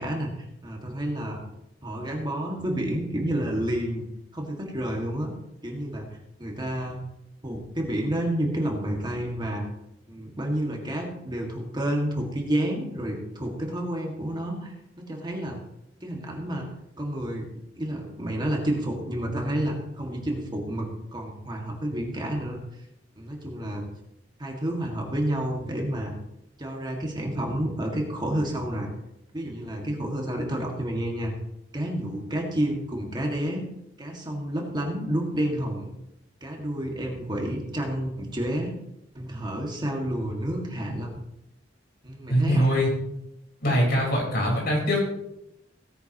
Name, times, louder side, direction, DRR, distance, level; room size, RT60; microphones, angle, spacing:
voice 1, 0.0-1.4 1.8-4.1 4.3-5.3 5.6-6.1 6.4-7.0 7.4-9.6 10.1-15.6 16.0-16.7 17.0-17.5 17.8-22.6 23.2-23.9 24.4-26.1 26.6-28.9 29.3-31.3 31.7-33.6 34.0-35.9 36.4-38.7 39.1-41.2 42.0-42.9, right 1 dB, 25° right, 0 dB, 1.9 m, -30 dB
voice 2, 42.3-42.9 43.6-45.1, equal, 55° left, -2 dB, 4.4 m, -22 dB
17.0 x 9.9 x 3.0 m, 0.86 s
head